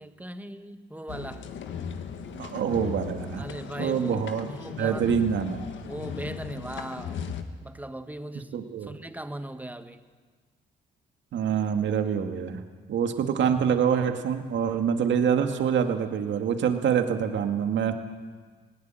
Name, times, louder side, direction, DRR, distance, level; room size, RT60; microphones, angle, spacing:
voice 1, 0.0-1.5 3.4-5.2 5.8-7.3 7.6-10.0, right 1 dB, 10° right, 9 dB, 1.5 m, -39 dB
sound 1, 1.1-7.4, left 7 dB, 70° left, 1.8 m, -37 dB
voice 2, 2.4-3.4 3.8-4.5 4.8-5.6 8.5-8.9 11.3-12.6 12.9-17.9, right 7 dB, 70° right, 6 dB, 2.1 m, -25 dB
19.5 x 18.0 x 9.1 m, 1.4 s
cardioid pair, 90°, 20 cm